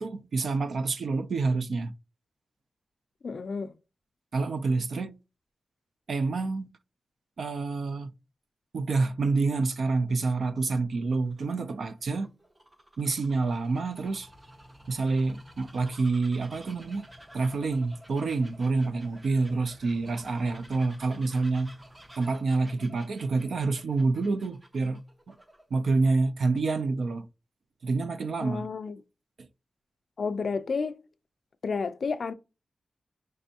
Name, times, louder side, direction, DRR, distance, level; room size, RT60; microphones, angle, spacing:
voice 1, 0.0-1.9 4.3-5.1 6.1-6.7 7.4-8.1 8.7-12.3 13.0-14.3 14.9-17.1 17.3-21.7 22.2-25.4 25.7-27.3 27.8-28.7 29.4-29.5, right 3 dB, 65° right, 0.4 m, -28 dB
voice 2, 3.2-3.7 28.4-29.0 30.2-31.0 31.6-32.3, left 5 dB, 50° left, 0.3 m, -31 dB
Bird vocalization bird call bird song, 10.9-25.9, right 1 dB, 15° right, 0.5 m, -54 dB
sound 1, 13.9-22.2, equal, 40° right, 1.6 m, -55 dB
5.2 x 3.3 x 2.7 m
wide cardioid pair, 165°, 0 cm